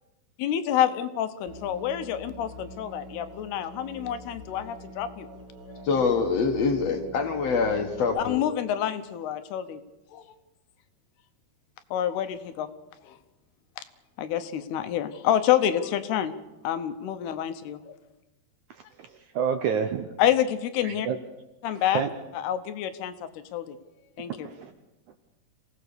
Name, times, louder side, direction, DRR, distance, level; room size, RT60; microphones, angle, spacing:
voice 1, 0.4-5.3 5.6-5.9 8.2-9.8 10.1-10.2 11.9-12.7 13.1-13.2 13.8-13.9 14.2-16.3 16.6-18.0 20.2-21.1 21.6-22.0 22.3-23.1 23.5-23.8 24.2-24.5, left 10 dB, 80° left, 10 dB, 3.0 m, -28 dB
Musical instrument, 1.5-8.2, left 1 dB, 35° right, 3.5 m, -45 dB
voice 2, 5.8-8.4, left 5 dB, 55° left, 5 dB, 2.0 m, -25 dB
voice 3, 19.0-20.1 20.8-21.2 21.9-22.1 24.4-24.7, right 7 dB, 70° right, 7 dB, 1.9 m, -28 dB
27.0 x 17.0 x 6.8 m, 1.1 s
omnidirectional pair, 4.5 m